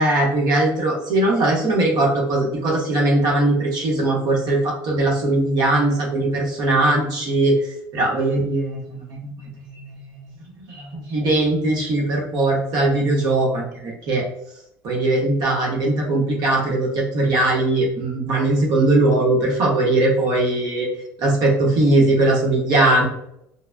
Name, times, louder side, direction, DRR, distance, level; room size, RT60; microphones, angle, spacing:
voice 1, 0.0-7.6 7.9-10.2 10.8-14.2 14.8-20.9 21.2-23.0, right 2 dB, 60° right, -2 dB, 0.9 m, -20 dB
2.3 x 2.0 x 3.2 m, 0.80 s
cardioid pair, 125°, 8 cm